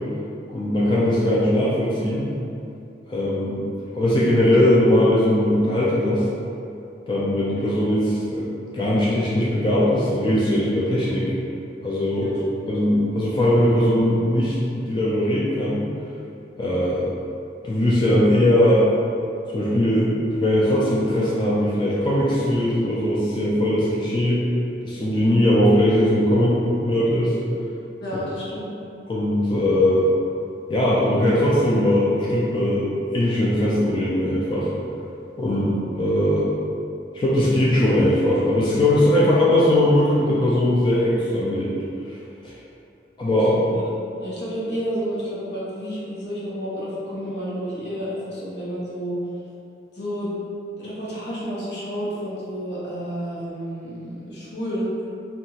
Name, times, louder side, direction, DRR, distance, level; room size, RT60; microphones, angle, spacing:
voice 1, 0.5-2.3 3.1-3.6 3.9-6.2 7.1-8.5 8.7-11.3 11.8-12.3 12.7-15.8 16.6-17.1 17.6-18.9 19.5-24.4 24.8-27.3 29.1-30.0 30.7-34.7 35.4-35.6 36.0-36.5 37.1-41.7 42.4-42.5 43.2-43.6, left 1 dB, 25° left, -7 dB, 0.3 m, -20 dB
voice 2, 12.1-12.4 28.0-28.7 35.4-35.8 43.7-43.8 44.2-49.2 49.9-50.3 50.8-55.0, equal, 80° left, -8 dB, 0.8 m, -30 dB
2.7 x 2.3 x 2.8 m, 2.7 s
head